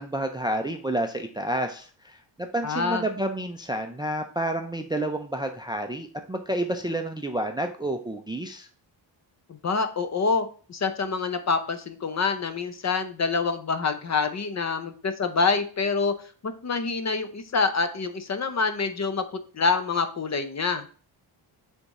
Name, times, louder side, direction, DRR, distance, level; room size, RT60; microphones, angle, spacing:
voice 1, 0.0-8.7, right 1 dB, 10° right, 5 dB, 0.4 m, -30 dB
voice 2, 2.6-3.0 9.5-16.1 16.4-20.9, left 4 dB, 35° left, 9 dB, 0.7 m, -26 dB
6.8 x 3.7 x 4.1 m, 0.40 s
cardioid pair, 125°, 45 cm